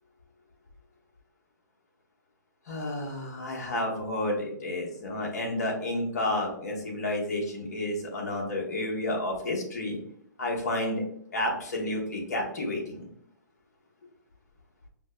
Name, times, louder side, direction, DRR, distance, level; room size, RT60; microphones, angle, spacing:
voice 1, 2.7-10.0 10.4-11.0 11.3-13.0, left 1 dB, 60° left, -1 dB, 1.2 m, -31 dB
5.7 x 2.1 x 2.2 m, 0.68 s
hypercardioid pair, 130°, 10 cm